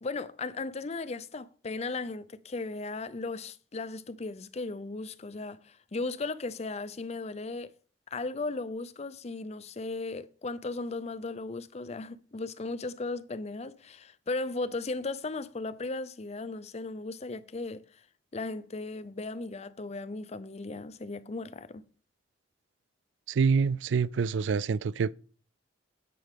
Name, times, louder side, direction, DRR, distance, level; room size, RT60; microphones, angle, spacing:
voice 1, 0.0-7.7 8.1-17.8 18.3-21.8, left 3 dB, 35° left, 0.6 m, -36 dB
voice 2, 23.3-25.1, right 5 dB, 85° right, 0.4 m, -26 dB
9.9 x 8.5 x 3.7 m
head